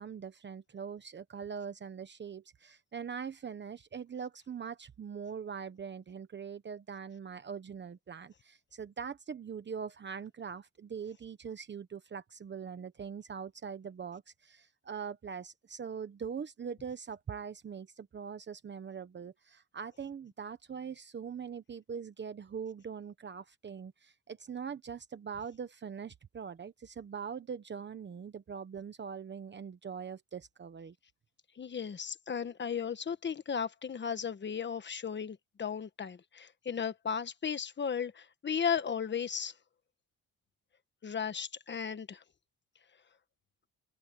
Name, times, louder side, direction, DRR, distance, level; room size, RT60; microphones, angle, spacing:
voice 1, 0.0-30.9, right 6 dB, 30° right, 1.1 m, -42 dB
voice 2, 31.6-39.5 41.0-42.2, left 7 dB, 35° left, 1.3 m, -35 dB
cardioid pair, 125°, 34 cm